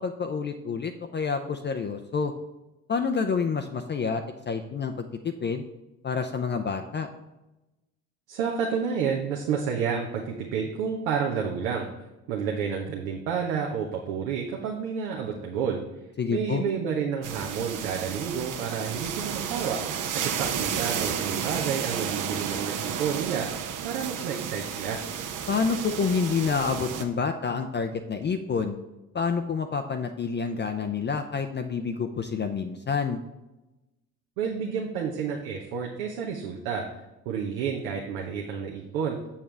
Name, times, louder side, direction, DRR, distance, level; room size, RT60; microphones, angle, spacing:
voice 1, 0.0-2.3 2.9-5.6 6.0-7.1 16.2-16.6 25.5-28.8 29.1-33.2, left 5 dB, 25° left, 6 dB, 0.5 m, -28 dB
voice 2, 8.3-11.9 12.3-15.8 16.3-19.8 20.1-23.5 23.8-25.0 34.4-36.8 37.2-39.2, right 6 dB, 70° right, -1 dB, 1.0 m, -30 dB
sound 1, 17.2-27.0, right 8 dB, 45° right, 0.9 m, -32 dB
7.2 x 7.1 x 3.4 m, 1.0 s
figure-of-eight pair, 55°, 44 cm